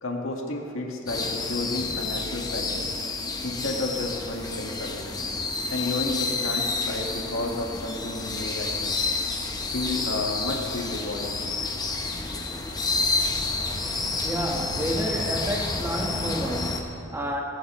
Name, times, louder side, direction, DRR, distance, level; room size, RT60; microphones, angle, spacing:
voice 1, 0.0-2.9 3.4-5.1 5.7-9.0 9.7-11.4, left 2 dB, 80° left, 0 dB, 1.8 m, -31 dB
sound 1, 1.1-16.8, left 3 dB, 20° left, 0.9 m, -29 dB
voice 2, 14.2-17.4, equal, 15° right, 0 dB, 1.3 m, -30 dB
18.0 x 15.0 x 3.1 m, 3.0 s
head